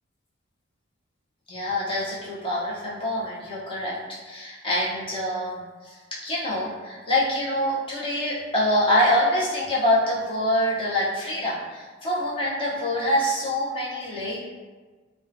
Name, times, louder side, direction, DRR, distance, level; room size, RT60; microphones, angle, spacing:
voice 1, 1.5-4.0 4.2-5.9 6.2-14.4, left 1 dB, 25° left, -7 dB, 0.6 m, -25 dB
2.6 x 2.1 x 2.6 m, 1.3 s
head